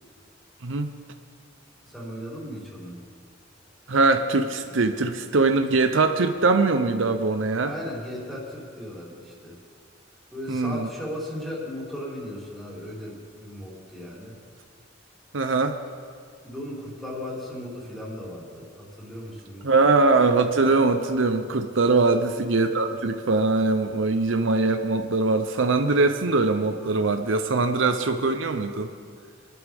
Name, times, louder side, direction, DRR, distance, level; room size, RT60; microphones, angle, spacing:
voice 1, 1.8-3.0 7.6-9.6 10.3-14.4 16.4-19.9 21.9-22.2, left 1 dB, ahead, -6 dB, 3.2 m, -37 dB
voice 2, 3.9-7.7 10.5-10.8 15.3-15.8 19.6-28.9, right 3 dB, 70° right, 7 dB, 0.7 m, -22 dB
24.0 x 12.0 x 3.5 m, 2.1 s
head